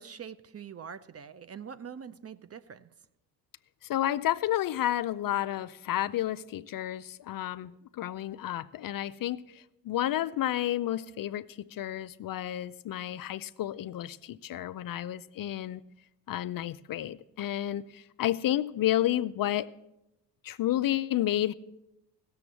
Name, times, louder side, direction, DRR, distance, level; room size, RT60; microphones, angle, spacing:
voice 1, 0.0-2.9, right 7 dB, 30° right, 15 dB, 0.6 m, -44 dB
voice 2, 3.9-15.8 16.3-19.7 20.4-21.5, left 13 dB, 50° left, 14 dB, 0.5 m, -31 dB
16.0 x 7.1 x 7.4 m, 0.90 s
hypercardioid pair, 55°, 46 cm